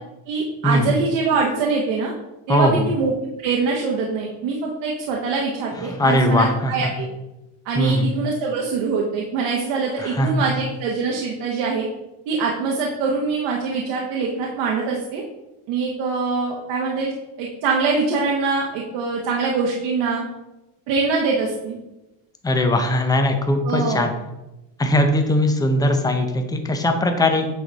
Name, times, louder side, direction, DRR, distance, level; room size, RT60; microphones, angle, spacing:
voice 1, 0.3-2.1 2.5-3.1 3.4-7.1 7.6-11.9 12.3-15.2 15.7-17.1 17.4-20.2 20.9-21.8 23.6-24.1, right 4 dB, 80° right, -2 dB, 1.2 m, -23 dB
voice 2, 2.5-2.9 5.8-6.9 7.7-8.1 10.0-10.5 22.4-24.1 24.8-27.5, left 1 dB, 10° left, 5 dB, 0.6 m, -20 dB
9.0 x 3.8 x 4.0 m, 0.98 s
cardioid pair, 150°, 43 cm